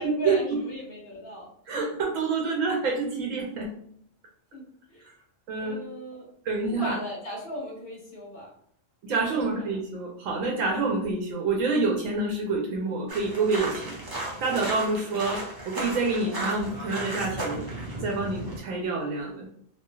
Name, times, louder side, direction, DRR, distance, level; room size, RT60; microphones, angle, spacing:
voice 1, 0.0-1.5 1.8-1.9 4.5-4.6 4.9-5.0 5.6-6.2 6.7-8.5 9.1-9.6, equal, 50° left, -3 dB, 1.4 m, -37 dB
voice 2, 1.7-3.7 5.5-5.9 6.4-6.9 9.0-14.0 14.4-17.7 18.0-19.5, right 3 dB, 85° right, -1 dB, 1.0 m, -27 dB
sound 1, 13.1-18.6, right 1 dB, 25° right, 0.5 m, -35 dB
3.1 x 2.7 x 2.2 m, 0.65 s
omnidirectional pair, 1.3 m